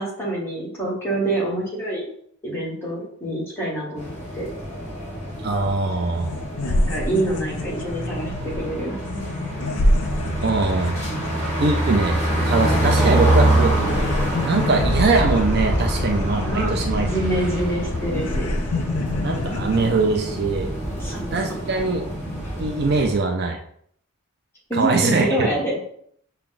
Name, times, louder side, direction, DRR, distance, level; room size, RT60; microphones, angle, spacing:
voice 1, 0.0-2.1 2.4-4.1 4.3-4.5 6.6-9.0 16.4-16.7 17.1-18.5 21.0-21.3 24.7-25.8, right 1 dB, 10° left, -5 dB, 1.3 m, -26 dB
sound 1, 4.0-23.2, right 1 dB, 30° left, 1.4 m, -26 dB
voice 2, 5.4-6.3 10.4-11.0 11.6-13.8 14.4-17.1 19.2-20.7 21.3-22.1 22.6-23.6 24.7-25.5, right 3 dB, 45° right, 3 dB, 0.4 m, -22 dB
sound 2, 5.9-6.0 6.2-13.2 13.5-19.9, left 1 dB, 85° left, 0.5 m, -28 dB
Boom, 14.8-21.3, equal, 5° right, 1.7 m, -28 dB
5.8 x 2.2 x 3.8 m, 0.66 s
head